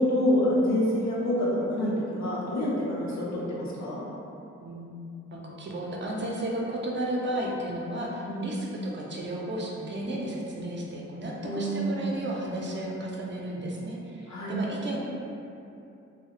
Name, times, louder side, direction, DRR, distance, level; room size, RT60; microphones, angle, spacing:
voice 1, 0.0-4.0 8.3-8.5 11.4-12.1 14.3-14.6, equal, 70° left, -6 dB, 0.7 m, -27 dB
voice 2, 4.6-5.0 5.3-15.0, right 1 dB, 40° right, -2 dB, 0.5 m, -33 dB
2.3 x 2.0 x 2.8 m, 2.7 s
cardioid pair, 70°, 29 cm